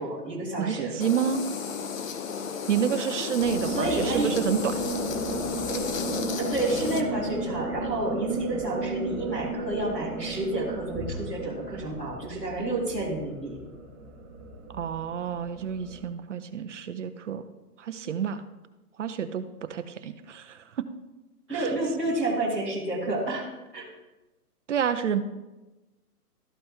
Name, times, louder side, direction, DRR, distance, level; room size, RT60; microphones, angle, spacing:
voice 1, 0.0-0.9 3.6-4.3 6.4-13.6 21.5-23.8, right 2 dB, 5° left, -11 dB, 0.5 m, -30 dB
voice 2, 0.6-1.4 2.7-4.8 14.7-17.4 17.8-18.4 19.0-20.9 21.5-21.7 24.7-25.2, right 8 dB, 50° right, 10 dB, 0.6 m, -29 dB
sound 1, 1.0-7.0, left 6 dB, 55° left, 0.9 m, -33 dB
sound 2, 3.4-16.1, right 2 dB, 25° right, 3.0 m, -34 dB
13.0 x 5.3 x 2.9 m, 1.1 s
hypercardioid pair, 145°, 47 cm